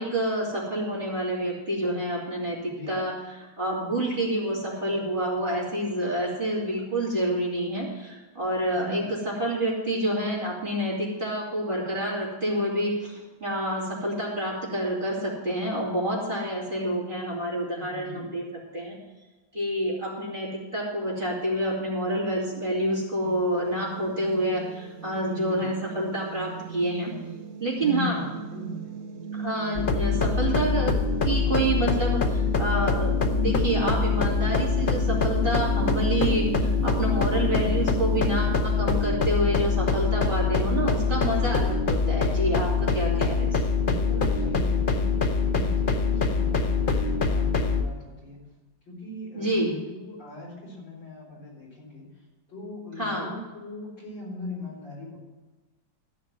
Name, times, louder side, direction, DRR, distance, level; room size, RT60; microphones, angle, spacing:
voice 1, 0.0-18.4 18.7-19.0 19.5-27.1 27.6-28.2 29.3-30.9 31.2-43.6 49.3-49.7 53.0-53.3, right 1 dB, 25° right, -6 dB, 3.2 m, -28 dB
voice 2, 2.7-3.0 8.7-9.1 17.9-18.3 25.2-25.7 27.8-29.0 37.3-37.9 43.8-48.4 48.9-52.1 52.5-55.2, left 2 dB, 75° left, -5 dB, 5.7 m, -39 dB
sound 1, 23.2-38.6, right 7 dB, 55° right, 0.9 m, -37 dB
sound 2, 29.7-47.8, left 4 dB, 55° left, 0.6 m, -24 dB
14.0 x 5.2 x 9.1 m, 1.2 s
omnidirectional pair, 2.0 m